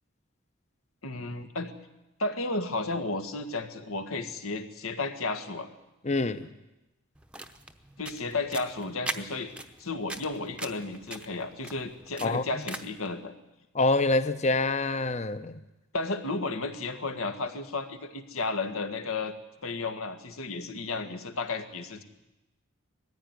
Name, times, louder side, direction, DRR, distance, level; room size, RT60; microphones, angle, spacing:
voice 1, 1.0-1.7 2.2-5.7 8.0-9.5 9.8-13.3 15.9-19.3 19.6-22.0, left 3 dB, 85° left, 7 dB, 1.8 m, -33 dB
voice 2, 6.0-6.5 12.2-12.4 13.7-15.6, left 2 dB, 30° left, 13 dB, 0.8 m, -26 dB
sound 1, 7.1-13.1, right 2 dB, 5° right, 0.9 m, -41 dB
19.5 x 15.0 x 9.6 m, 1.0 s
head